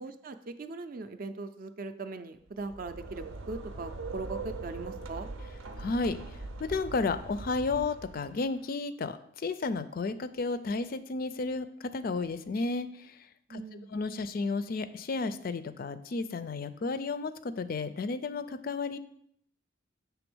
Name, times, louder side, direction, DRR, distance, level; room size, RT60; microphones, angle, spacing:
voice 1, 0.0-5.3 13.5-13.9, right 3 dB, 45° right, 10 dB, 0.4 m, -40 dB
sound 1, 2.5-8.5, right 3 dB, 85° right, 0.7 m, -41 dB
voice 2, 5.8-13.2 13.5-13.6 13.9-19.0, left 3 dB, 45° left, 12 dB, 0.4 m, -33 dB
6.9 x 3.4 x 6.1 m, 0.67 s
head